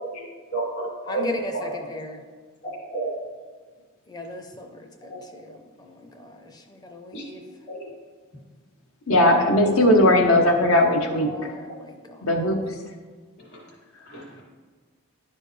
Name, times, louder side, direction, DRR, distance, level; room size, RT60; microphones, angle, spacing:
voice 1, 0.5-1.3 1.5-1.8 2.9-3.2 5.1-5.2 7.1-7.2 7.7-7.9 13.5-13.6 14.1-14.4, right 3 dB, 50° left, -3 dB, 2.2 m, -31 dB
voice 2, 1.1-2.2 4.1-7.4 10.6-10.7 11.2-12.3, left 1 dB, 20° left, 4 dB, 0.6 m, -37 dB
voice 3, 9.1-11.5 12.2-12.6, left 1 dB, 70° left, 3 dB, 0.9 m, -18 dB
11.0 x 4.5 x 3.2 m, 1.5 s
head